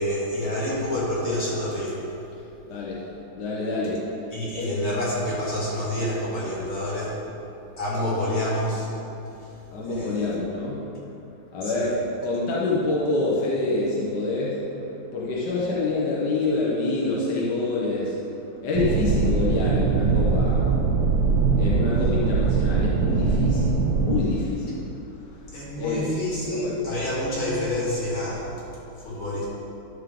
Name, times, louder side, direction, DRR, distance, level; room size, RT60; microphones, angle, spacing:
voice 1, 0.0-2.0 4.3-7.2 7.8-8.9 9.9-10.2 11.6-11.9 25.5-28.5 29.0-29.5, left 1 dB, 75° left, -7 dB, 3.2 m, -28 dB
voice 2, 2.7-3.0 3.3-4.0 4.5-4.7 7.9-8.1 9.7-10.8 11.5-11.9 12.2-14.6 15.1-18.2 18.6-20.7 21.6-24.8 25.8-26.2 26.4-26.8, left 3 dB, 55° left, -6 dB, 1.6 m, -26 dB
sound 1, 18.7-24.2, right 5 dB, 80° right, 0.8 m, -22 dB
11.5 x 6.5 x 3.8 m, 2.8 s
omnidirectional pair, 2.3 m